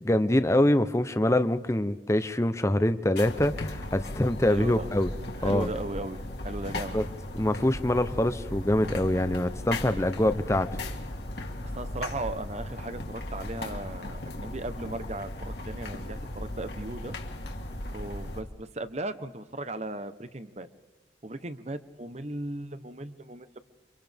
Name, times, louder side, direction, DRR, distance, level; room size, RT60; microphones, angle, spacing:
voice 1, 0.0-5.1 5.4-5.7 6.9-7.0 7.4-10.7, left 1 dB, 15° left, 11 dB, 0.7 m, -25 dB
sound 1, 3.2-18.4, left 1 dB, 60° left, 2.1 m, -37 dB
voice 2, 4.4-4.9 5.4-7.0 11.7-17.1 17.9-20.7 21.2-23.6, right 2 dB, 35° right, 11 dB, 0.9 m, -37 dB
30.0 x 25.5 x 3.5 m, 1.3 s
head